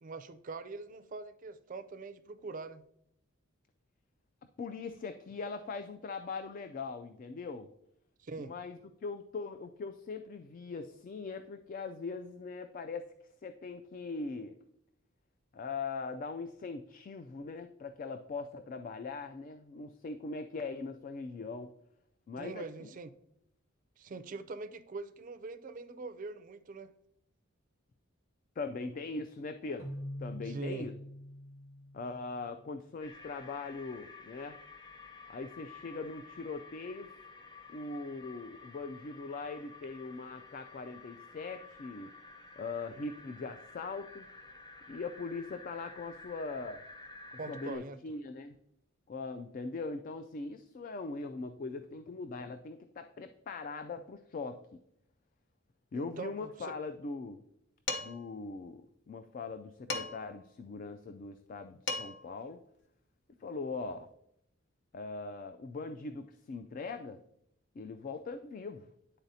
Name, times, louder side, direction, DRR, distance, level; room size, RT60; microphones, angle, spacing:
voice 1, 0.0-2.8 8.2-8.5 22.4-23.1 24.0-26.9 30.4-30.9 47.4-48.0 55.9-56.7, right 3 dB, 40° right, 0.4 m, -43 dB
voice 2, 4.6-7.7 8.4-13.1 13.4-14.6 15.5-21.7 22.3-22.9 28.6-29.9 30.2-30.9 31.9-34.6 35.3-37.1 37.7-42.1 42.6-44.3 44.9-46.8 47.5-48.6 49.1-54.6 55.9-57.4 58.0-62.6 63.4-64.1 64.9-67.2 67.8-68.9, left 4 dB, 40° left, 0.3 m, -41 dB
Keyboard (musical), 29.8-32.7, equal, 90° left, 1.6 m, -44 dB
sound 1, 33.0-47.8, left 3 dB, 20° left, 0.7 m, -52 dB
Dishes pots and pans, 57.9-58.3 59.9-60.4 61.5-61.6 61.9-62.3, left 3 dB, 60° left, 0.8 m, -37 dB
10.5 x 4.0 x 2.7 m
head